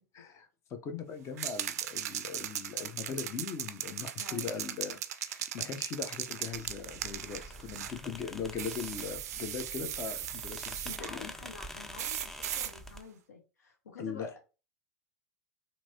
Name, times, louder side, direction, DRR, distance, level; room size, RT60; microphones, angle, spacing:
voice 1, 0.0-11.3 14.0-14.3, left 6 dB, 35° left, 7 dB, 0.7 m, -40 dB
sound 1, 1.4-8.0 8.6-11.1 12.0-12.7, right 11 dB, 75° right, 0.3 m, -38 dB
sound 2, 6.5-13.0, equal, 5° left, 0.3 m, -47 dB
voice 2, 10.8-14.3, left 4 dB, 85° left, 0 dB, 0.8 m, -49 dB
3.0 x 2.6 x 2.7 m, 0.32 s
hypercardioid pair, 100°, 9 cm